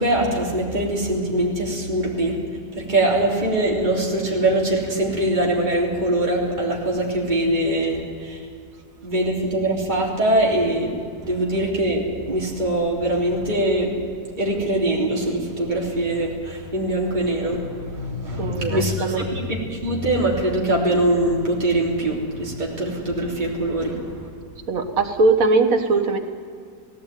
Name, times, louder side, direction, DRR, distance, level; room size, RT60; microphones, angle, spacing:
voice 1, 0.0-2.4 2.8-8.4 9.0-10.9 11.2-13.9 14.4-24.0, right 1 dB, 25° right, -3 dB, 3.6 m, -22 dB
voice 2, 18.4-19.2 24.7-26.2, right 3 dB, 50° right, 6 dB, 1.8 m, -20 dB
18.0 x 16.5 x 9.4 m, 2.2 s
omnidirectional pair, 1.9 m